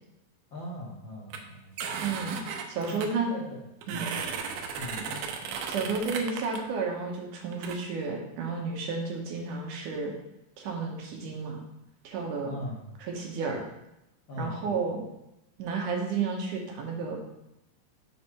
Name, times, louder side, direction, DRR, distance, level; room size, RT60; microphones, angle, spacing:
voice 1, 0.5-2.1 2.9-3.6 3.9-4.2 4.7-5.2 12.4-12.9 14.3-14.9, left 1 dB, 85° left, -4 dB, 1.0 m, -40 dB
sound 1, 1.3-1.4 1.8-3.1 3.8-6.6 7.5-7.8, right 6 dB, 85° right, 2.4 m, -35 dB
voice 2, 2.0-2.4 2.7-3.3 3.9-4.2 5.7-10.1 10.6-11.6 12.0-12.5 13.0-13.6 14.4-15.0 15.6-17.2, right 4 dB, 70° right, 1 dB, 2.4 m, -32 dB
6.5 x 4.8 x 4.5 m, 0.88 s
omnidirectional pair, 4.0 m